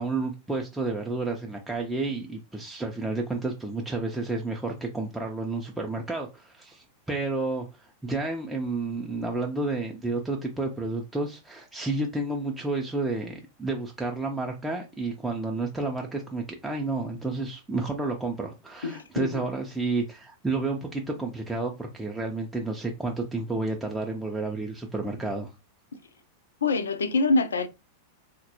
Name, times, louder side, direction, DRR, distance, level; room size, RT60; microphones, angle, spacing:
voice 1, 0.0-25.5, right 3 dB, 5° right, 0.4 m, -31 dB
voice 2, 18.8-19.3 26.6-27.7, left 3 dB, 70° left, 0.4 m, -25 dB
3.9 x 2.1 x 2.8 m
figure-of-eight pair, 90°, 0 cm